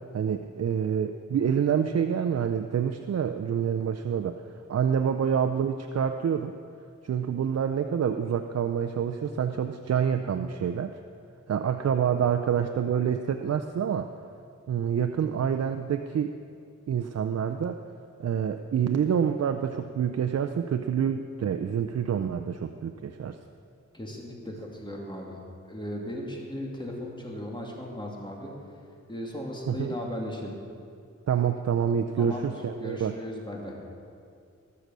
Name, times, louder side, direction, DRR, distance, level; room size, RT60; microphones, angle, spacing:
voice 1, 0.1-4.4 4.7-6.5 7.0-11.0 11.5-14.1 14.7-16.3 16.9-17.8 18.2-23.4 29.7-29.9 31.3-33.2, right 8 dB, 60° right, 7 dB, 0.5 m, -27 dB
voice 2, 23.9-25.4 25.7-28.5 29.1-30.5 32.2-33.8, left 1 dB, 15° left, -2 dB, 2.4 m, -37 dB
19.5 x 6.7 x 6.2 m, 2.4 s
wide cardioid pair, 90°, 29 cm